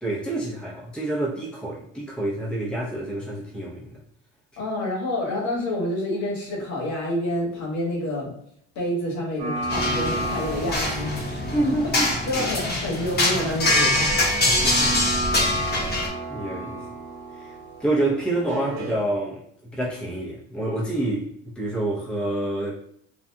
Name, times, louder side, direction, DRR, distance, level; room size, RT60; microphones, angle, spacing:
voice 1, 0.0-4.0 11.4-12.1 14.4-15.0 15.4-15.9 16.3-17.0 17.3-17.5 17.8-19.4 19.7-21.2 21.5-22.7, right 1 dB, 5° left, -6 dB, 0.7 m, -28 dB
voice 2, 4.6-8.3 8.7-14.1, left 1 dB, 55° left, -3 dB, 1.4 m, -28 dB
sound 1, 9.4-19.0, right 1 dB, 80° right, 0.8 m, -32 dB
sound 2, 9.7-16.1, left 1 dB, 30° left, 1.0 m, -24 dB
2.8 x 2.3 x 2.2 m, 0.70 s
supercardioid pair, 100°, 32 cm